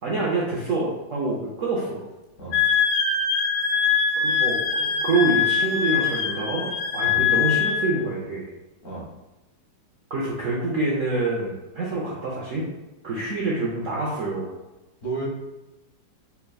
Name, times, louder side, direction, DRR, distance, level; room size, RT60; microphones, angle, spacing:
voice 1, 0.0-2.0 4.2-8.5 10.1-12.7 13.0-14.5, right 3 dB, 75° right, -5 dB, 0.7 m, -26 dB
voice 2, 2.4-2.6 7.0-7.2 8.8-9.1 15.0-15.3, right 3 dB, 55° left, -5 dB, 1.7 m, -32 dB
Wind instrument woodwind instrument, 2.5-7.8, left 6 dB, 80° left, 1.4 m, -23 dB
4.3 x 3.4 x 2.2 m, 1.0 s
omnidirectional pair, 2.1 m